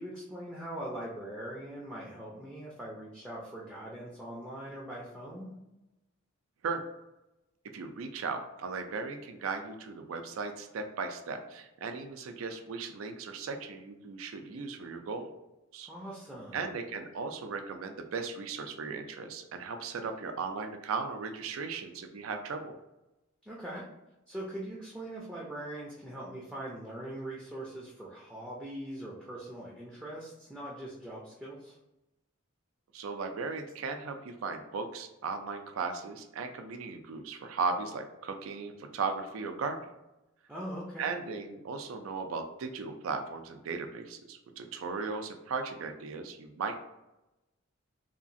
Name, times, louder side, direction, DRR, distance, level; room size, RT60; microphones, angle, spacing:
voice 1, 0.0-5.5 15.9-16.7 23.4-23.9 24.3-31.8 40.5-41.1, right 1 dB, 5° right, -5 dB, 0.4 m, -41 dB
voice 2, 7.7-15.3 15.7-15.9 16.5-22.7 32.9-39.8 41.0-46.8, right 4 dB, 85° right, 6 dB, 0.4 m, -37 dB
2.8 x 2.4 x 2.6 m, 0.97 s
head